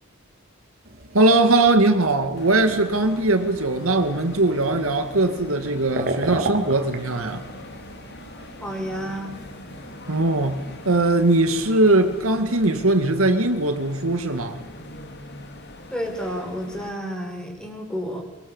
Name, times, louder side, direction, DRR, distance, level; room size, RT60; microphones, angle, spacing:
sound 1, 0.8-12.5, right 3 dB, 50° right, 3.2 m, -36 dB
voice 1, 1.1-7.5 10.1-14.6, right 2 dB, 80° right, 2.2 m, -20 dB
sound 2, 2.3-16.9, left 1 dB, 55° left, 2.7 m, -41 dB
voice 2, 8.6-9.4 15.9-18.2, equal, 5° left, 5.5 m, -30 dB
24.0 x 23.5 x 7.3 m
head